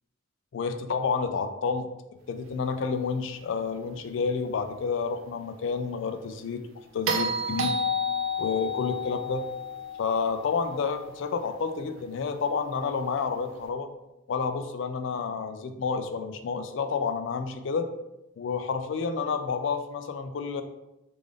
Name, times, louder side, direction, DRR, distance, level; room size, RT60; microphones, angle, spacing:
voice 1, 0.5-1.9 2.3-6.6 6.9-7.8 8.4-9.4 10.0-13.9 14.3-17.9 18.4-20.6, left 5 dB, 60° left, 7 dB, 0.3 m, -29 dB
sound 1, 7.1-11.3 13.6-13.7, left 1 dB, 65° right, 0.4 m, -31 dB
3.3 x 2.5 x 3.5 m, 0.92 s
head